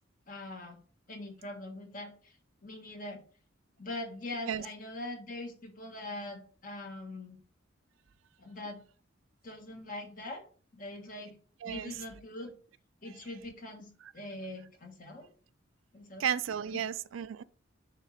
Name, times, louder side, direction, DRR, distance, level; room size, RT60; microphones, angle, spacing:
voice 1, 0.3-0.8 1.1-2.4 2.6-3.2 3.8-7.4 8.4-8.8 9.4-10.4 10.7-11.3 11.6-12.5 13.0-15.3 15.9-16.3 16.7-16.8, left 2 dB, 45° left, 1.4 m, -42 dB
voice 2, 11.6-12.0 16.2-17.4, right 9 dB, 85° right, 0.4 m, -33 dB
6.7 x 3.2 x 4.9 m
head